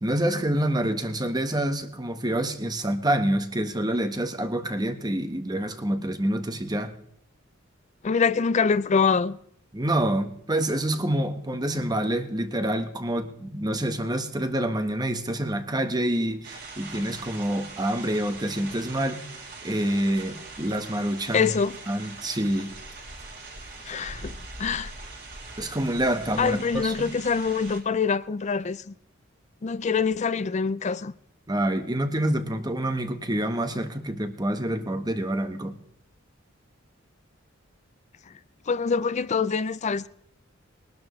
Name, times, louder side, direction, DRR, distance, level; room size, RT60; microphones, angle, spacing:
voice 1, 0.0-6.9 9.7-19.2 19.6-21.5 21.9-22.7 25.6-27.1 31.5-35.7, right 1 dB, 20° right, 1.3 m, -27 dB
voice 2, 8.0-9.4 21.3-21.7 23.9-24.9 26.4-28.9 29.6-31.1 38.7-40.1, left 5 dB, 35° left, 0.4 m, -25 dB
sound 1, 16.4-27.8, right 3 dB, 55° right, 5.1 m, -42 dB
22.0 x 12.0 x 3.2 m
head